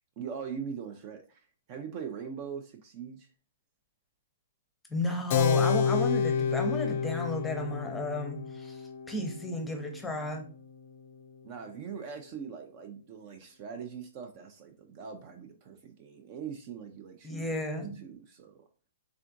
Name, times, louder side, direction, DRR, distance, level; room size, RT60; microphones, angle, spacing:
voice 1, 0.2-3.3 11.4-17.5 18.0-18.6, right 7 dB, 35° right, 5 dB, 0.5 m, -41 dB
voice 2, 4.9-8.8 9.1-10.4 17.2-18.0, left 1 dB, 5° left, 3 dB, 0.8 m, -33 dB
Keyboard (musical), 5.3-11.4, left 6 dB, 45° left, 0.4 m, -30 dB
3.6 x 3.3 x 2.6 m, 0.40 s
figure-of-eight pair, 115°, 0 cm